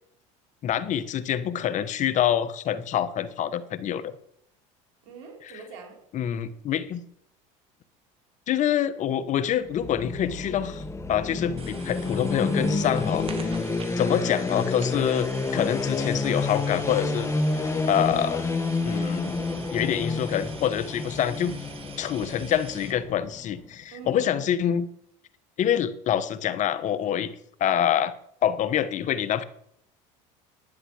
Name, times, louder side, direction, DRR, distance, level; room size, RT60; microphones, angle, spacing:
voice 1, 0.6-4.1 5.4-5.5 6.1-7.0 8.5-10.8 11.1-13.5 14.0-18.5 18.8-19.3 19.7-21.5 22.0-24.9 25.6-27.3 27.6-28.2 28.4-29.4, left 10 dB, 45° left, 14 dB, 1.1 m, -26 dB
voice 2, 5.0-6.0 13.5-14.0 23.9-24.6 27.0-27.3, right 5 dB, 80° right, 2 dB, 4.3 m, -44 dB
sound 1, 9.6-23.5, left 3 dB, 15° left, 1.2 m, -29 dB
sound 2, 11.6-22.9, right 5 dB, 35° right, 2.0 m, -44 dB
11.0 x 9.7 x 6.4 m, 0.71 s
supercardioid pair, 100°, 17 cm